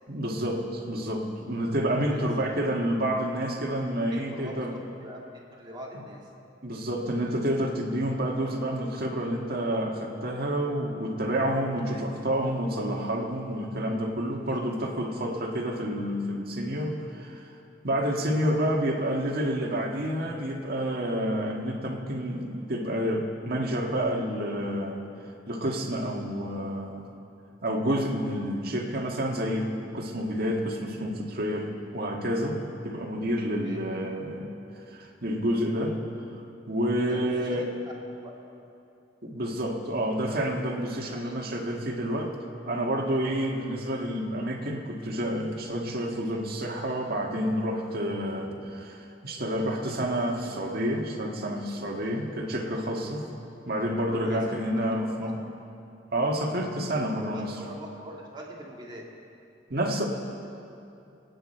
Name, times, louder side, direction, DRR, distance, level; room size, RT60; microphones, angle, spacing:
voice 1, 0.1-4.7 6.6-17.4 17.8-25.0 25.5-27.1 27.6-34.5 34.9-36.0 36.7-37.7 39.2-42.3 42.6-48.5 49.2-53.3 53.6-55.4 56.1-57.5 59.7-60.0, equal, 55° right, 0 dB, 1.8 m, -29 dB
voice 2, 4.1-4.7 5.0-6.3 8.3-8.7 11.8-12.1 14.3-14.6 33.6-33.8 36.9-37.9 38.2-38.3 41.1-41.5 48.5-48.6 54.2-54.6 55.0-55.3 57.3-59.0, equal, 25° right, -3 dB, 2.2 m, -44 dB
24.5 x 9.4 x 4.4 m, 2.7 s
head